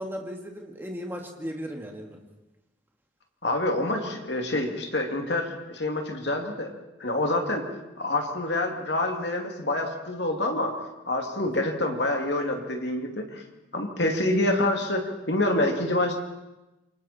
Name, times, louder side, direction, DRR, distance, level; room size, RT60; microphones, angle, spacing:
voice 1, 0.0-2.2, equal, 10° right, 1 dB, 2.2 m, -36 dB
voice 2, 3.4-6.7 7.0-7.6 8.0-10.8 11.1-13.4 13.7-16.2, left 1 dB, 60° left, 3 dB, 2.6 m, -27 dB
27.5 x 24.0 x 4.4 m, 1.0 s
head